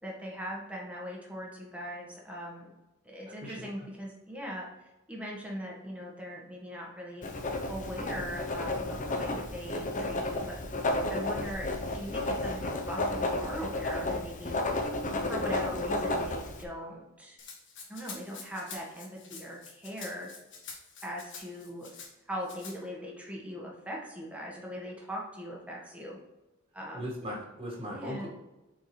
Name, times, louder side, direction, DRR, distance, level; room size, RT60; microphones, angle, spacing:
voice 1, 0.0-2.7 3.0-7.2 7.7-10.6 11.1-14.6 15.3-17.4 17.9-20.3 21.0-21.9 22.3-26.2 26.7-27.1 27.9-28.3, equal, 5° right, -3 dB, 1.5 m, -40 dB
Writing, 7.2-16.6, left 2 dB, 35° left, 0.8 m, -32 dB
Rattle (instrument), 17.4-22.1 22.5-22.8, left 5 dB, 60° left, 1.7 m, -46 dB
voice 2, 26.9-28.3, equal, 25° right, -4 dB, 1.9 m, -38 dB
7.5 x 4.6 x 3.3 m, 1.0 s
head